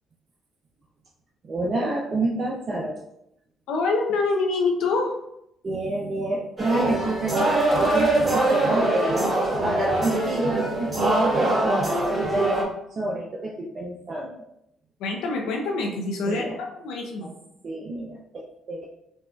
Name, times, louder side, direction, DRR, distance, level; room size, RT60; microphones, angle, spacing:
voice 1, 1.4-3.0 5.6-9.3 9.6-12.5 12.9-14.3 16.2-16.6 17.6-18.9, right 2 dB, 50° right, -2 dB, 0.5 m, -28 dB
voice 2, 3.7-5.1 15.0-16.4 16.8-17.3, left 3 dB, 85° left, 0 dB, 0.6 m, -25 dB
sound 1, 6.6-12.6, right 2 dB, 30° right, 1.2 m, -23 dB
Gunshot gunfire, 7.6-8.8, left 2 dB, 45° left, 1.0 m, -42 dB
4.0 x 2.4 x 2.2 m, 0.80 s
supercardioid pair, 70°, 0 cm